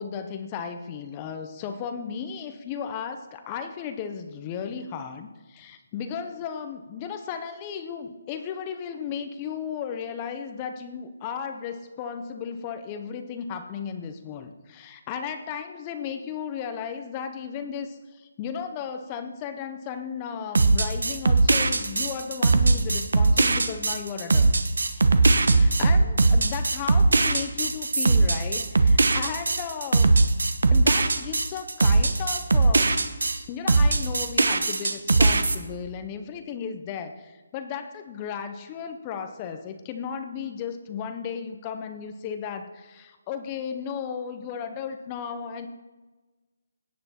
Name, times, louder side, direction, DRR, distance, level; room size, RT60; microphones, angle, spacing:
voice 1, 0.0-24.5 24.8-25.1 25.4-30.2 30.7-33.1 33.5-45.7, left 7 dB, 20° left, 8 dB, 0.6 m, -35 dB
sound 1, 20.6-33.4 33.7-35.6, right 3 dB, 85° right, 1.0 m, -20 dB
17.5 x 9.5 x 4.2 m, 1.2 s
hypercardioid pair, 170°, 0 cm